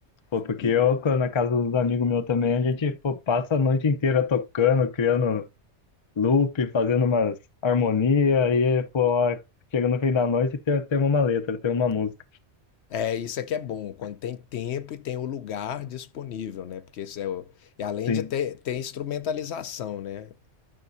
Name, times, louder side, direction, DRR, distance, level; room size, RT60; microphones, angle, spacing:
voice 1, 0.3-5.4 6.2-7.4 7.6-9.4 9.7-12.1 18.1-18.3, left 5 dB, 30° left, 0.6 m, -23 dB
voice 2, 12.9-17.5 17.8-20.3, left 9 dB, 70° left, 0.9 m, -32 dB
12.5 x 5.9 x 2.6 m
omnidirectional pair, 1.2 m